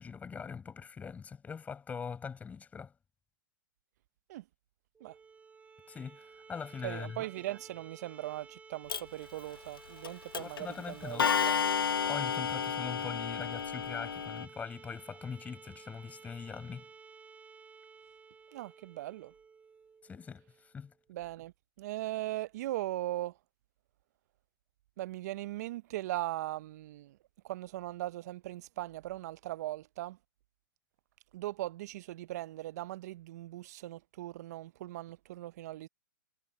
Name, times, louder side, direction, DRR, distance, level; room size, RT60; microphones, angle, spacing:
voice 1, 0.0-2.9 5.9-7.2 10.4-11.3 12.0-16.9 20.0-20.9, left 6 dB, 10° left, 6.0 m, -42 dB
sound 1, 4.9-20.7, right 5 dB, 10° right, 6.2 m, -54 dB
voice 2, 6.8-11.7 18.5-19.3 21.1-21.5 21.8-23.3 25.0-27.2 27.4-30.2 31.3-35.9, right 16 dB, 45° right, 0.7 m, -39 dB
Clock, 8.9-9.0 10.0-10.1 10.3-10.6 11.2-14.5, left 7 dB, 80° left, 0.7 m, -31 dB
hypercardioid pair, 130°, 12 cm